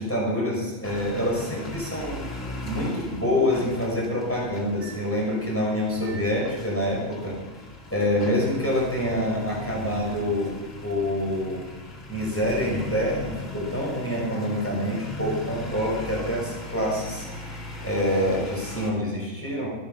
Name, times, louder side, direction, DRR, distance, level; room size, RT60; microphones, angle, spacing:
voice 1, 0.0-2.2 2.6-7.4 7.9-10.5 10.8-11.6 12.1-17.2 17.8-19.7, left 1 dB, 10° left, -3 dB, 5.6 m, -26 dB
sound 1, 0.8-18.9, left 1 dB, 65° left, 3.0 m, -39 dB
14.5 x 12.5 x 5.5 m, 1.3 s
omnidirectional pair, 1.4 m